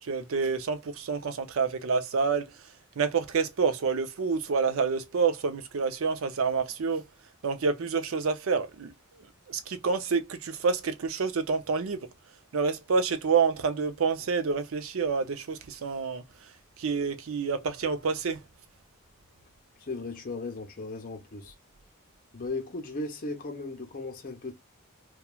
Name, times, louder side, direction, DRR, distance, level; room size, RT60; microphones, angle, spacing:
voice 1, 0.0-2.5 3.0-7.0 7.4-8.9 9.5-12.0 12.5-16.2 16.8-18.4, right 5 dB, 65° right, 0.5 m, -28 dB
voice 2, 19.8-21.5 22.3-24.5, left 3 dB, 40° left, 0.7 m, -36 dB
2.9 x 2.2 x 2.2 m
head